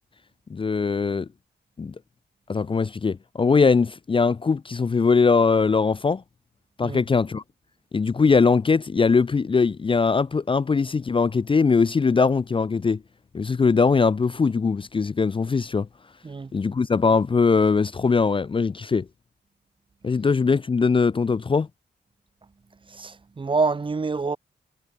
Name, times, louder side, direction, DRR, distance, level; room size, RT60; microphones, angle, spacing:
voice 1, 0.5-1.3 1.8-1.9 2.5-6.2 6.8-7.4 7.9-13.0 13.3-15.9 16.5-19.1 20.0-21.7, left 4 dB, 30° left, 0.6 m, -21 dB
voice 2, 22.9-24.4, right 4 dB, 25° right, 1.1 m, -26 dB
wide cardioid pair, 145°, 18 cm